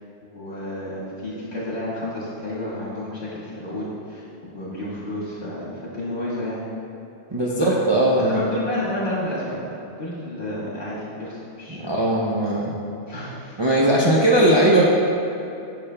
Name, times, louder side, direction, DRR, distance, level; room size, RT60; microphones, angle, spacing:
voice 1, 0.2-6.6 8.3-9.7 10.0-11.9 13.1-13.9, left 1 dB, 60° left, -7 dB, 1.9 m, -31 dB
voice 2, 7.3-8.4 11.7-12.7 13.6-14.8, right 1 dB, 35° right, -5 dB, 0.4 m, -19 dB
10.0 x 5.9 x 2.2 m, 2.7 s
omnidirectional pair, 1.2 m